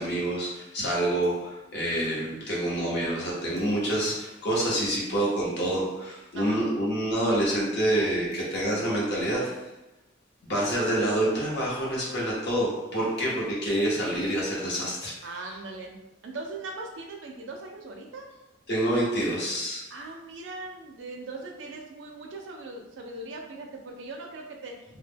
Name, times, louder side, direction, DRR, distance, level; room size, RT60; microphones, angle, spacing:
voice 1, 0.0-9.5 10.4-15.1 18.7-19.8, right 1 dB, 60° left, -5 dB, 0.9 m, -27 dB
voice 2, 15.2-16.0 16.2-18.2 19.9-24.7, right 2 dB, 75° right, 1 dB, 0.4 m, -40 dB
2.3 x 2.1 x 3.3 m, 0.96 s
head